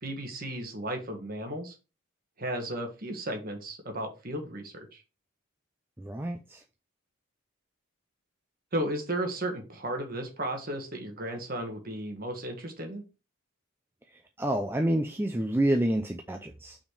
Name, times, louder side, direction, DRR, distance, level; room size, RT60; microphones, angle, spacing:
voice 1, 0.0-1.7 2.4-5.0 8.7-13.0, right 1 dB, 40° right, 1.7 m, -34 dB
voice 2, 6.0-6.6 14.1-16.8, right 1 dB, 10° right, 0.4 m, -28 dB
5.9 x 4.3 x 4.8 m
head